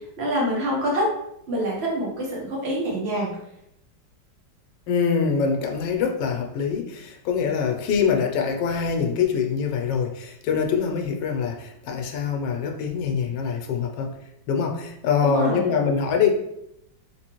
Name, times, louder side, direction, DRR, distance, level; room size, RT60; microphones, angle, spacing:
voice 1, 0.2-1.1 1.5-3.3 15.2-15.7, equal, 40° right, -4 dB, 1.2 m, -26 dB
voice 2, 4.9-14.1 14.5-16.3, left 6 dB, 80° left, 3 dB, 1.3 m, -24 dB
3.5 x 3.0 x 2.9 m, 0.80 s
omnidirectional pair, 1.9 m